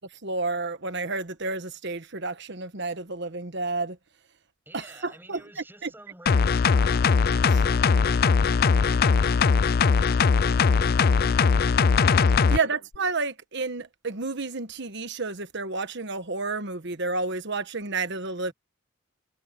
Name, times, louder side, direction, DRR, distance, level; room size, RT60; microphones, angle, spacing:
voice 1, 0.2-4.0 5.0-5.4 12.5-18.5, right 3 dB, 55° right, 1.3 m, -30 dB
voice 2, 4.7-12.7, right 1 dB, 10° right, 7.6 m, -52 dB
sound 1, 6.3-12.6 12.9-13.0, left 5 dB, 45° left, 0.4 m, -20 dB
head